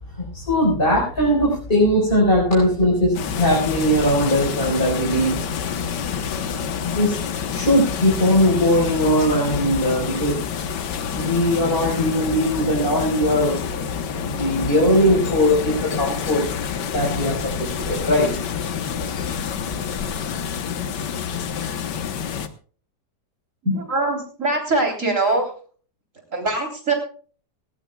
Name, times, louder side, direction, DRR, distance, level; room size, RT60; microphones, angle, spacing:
voice 1, 0.3-5.4 6.8-7.2 7.5-10.4 11.1-13.8 14.2-16.4 16.9-18.4, equal, 30° left, -3 dB, 5.1 m, -20 dB
sound 1, 3.1-22.5, left 7 dB, 85° left, 1.8 m, -28 dB
voice 2, 23.6-25.5 26.3-26.9, right 2 dB, 45° right, 3 dB, 3.9 m, -22 dB
19.5 x 18.0 x 2.3 m, 0.42 s
omnidirectional pair, 1.8 m